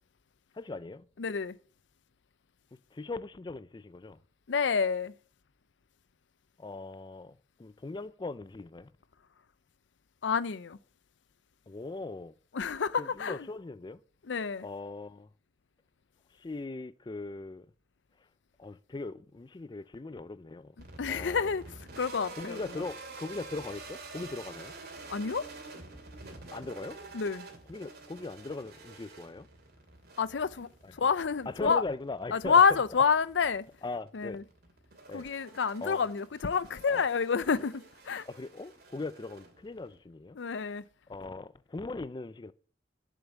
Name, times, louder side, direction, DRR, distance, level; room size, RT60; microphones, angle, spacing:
voice 1, 0.5-1.1 2.9-4.2 6.6-8.9 11.7-12.3 13.0-14.0 14.6-15.3 16.4-17.7 18.6-20.7 21.1-21.5 22.4-24.7 26.5-27.0 27.7-29.5 30.8-30.9 31.5-32.6 33.8-34.4 35.1-35.2 35.8-36.0 36.9-37.0 38.3-40.4 41.1-42.5, left 3 dB, 25° left, 0.4 m, -40 dB
voice 2, 1.2-1.6 4.5-5.1 10.2-10.8 12.5-13.5 14.2-14.7 21.0-22.6 25.1-25.5 27.1-27.5 30.2-31.8 32.3-33.7 34.1-34.4 35.1-38.3 40.4-40.8, left 6 dB, 80° left, 0.5 m, -28 dB
sound 1, 20.8-40.0, right 3 dB, 60° right, 2.6 m, -49 dB
7.5 x 7.0 x 8.1 m
head